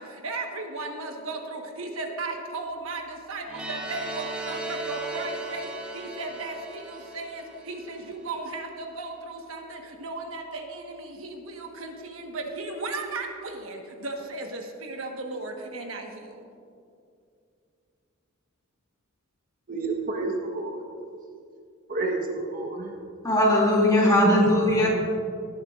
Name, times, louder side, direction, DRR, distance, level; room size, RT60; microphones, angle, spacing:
voice 1, 0.0-16.4, right 2 dB, 70° right, 2 dB, 1.3 m, -36 dB
sound 1, 3.5-8.3, right 2 dB, 5° right, 1.4 m, -37 dB
voice 2, 19.7-20.8 21.9-22.9 24.2-24.9, right 2 dB, 45° right, 1 dB, 1.2 m, -29 dB
voice 3, 23.2-24.9, left 1 dB, 20° left, -4 dB, 2.6 m, -19 dB
18.5 x 11.5 x 2.5 m, 2.4 s
head